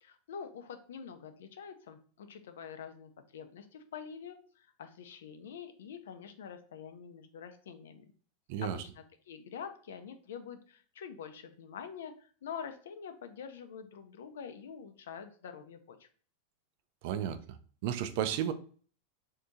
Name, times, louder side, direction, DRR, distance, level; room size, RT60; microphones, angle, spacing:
voice 1, 0.0-8.0 8.6-16.1, left 7 dB, 85° left, 8 dB, 0.5 m, -46 dB
voice 2, 17.0-17.4 17.8-18.5, right 10 dB, 60° right, 10 dB, 0.4 m, -32 dB
2.7 x 2.7 x 3.5 m, 0.43 s
supercardioid pair, 130°, 0 cm